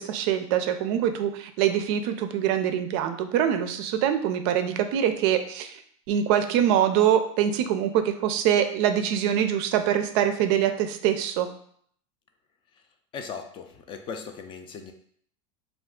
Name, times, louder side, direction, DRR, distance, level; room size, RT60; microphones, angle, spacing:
voice 1, 0.0-5.8 6.1-11.5, right 9 dB, 60° right, 8 dB, 0.4 m, -24 dB
voice 2, 13.1-14.9, left 6 dB, 30° left, 6 dB, 0.3 m, -38 dB
2.4 x 2.3 x 3.5 m, 0.62 s
supercardioid pair, 130°, 16 cm